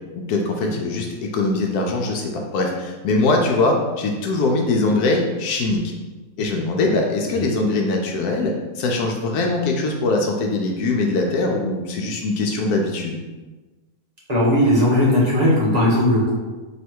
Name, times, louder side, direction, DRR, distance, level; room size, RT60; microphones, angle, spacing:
voice 1, 0.3-5.9 6.4-13.2, left 2 dB, 85° left, 1 dB, 1.1 m, -22 dB
voice 2, 14.3-16.3, left 1 dB, 30° right, -6 dB, 1.0 m, -17 dB
3.2 x 2.8 x 4.5 m, 1.2 s
omnidirectional pair, 1.6 m